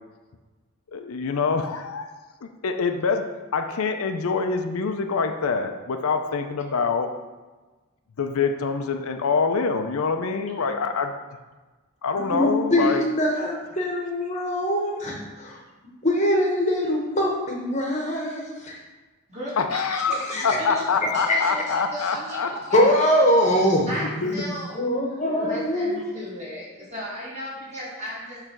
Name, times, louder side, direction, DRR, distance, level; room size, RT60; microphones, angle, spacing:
voice 1, 0.9-2.1 2.4-7.1 8.2-11.1 12.0-13.0 19.6-20.2 20.4-22.5 24.2-24.3, left 5 dB, 75° left, 6 dB, 0.5 m, -25 dB
voice 2, 12.3-15.6 16.0-18.4 20.3-20.4 21.3-21.4 22.7-26.0, equal, 30° left, -1 dB, 1.0 m, -23 dB
voice 3, 19.3-20.8 21.1-22.8 23.1-23.2 23.9-24.8 25.4-28.4, equal, 30° right, -7 dB, 2.1 m, -35 dB
6.8 x 3.2 x 6.0 m, 1.2 s
head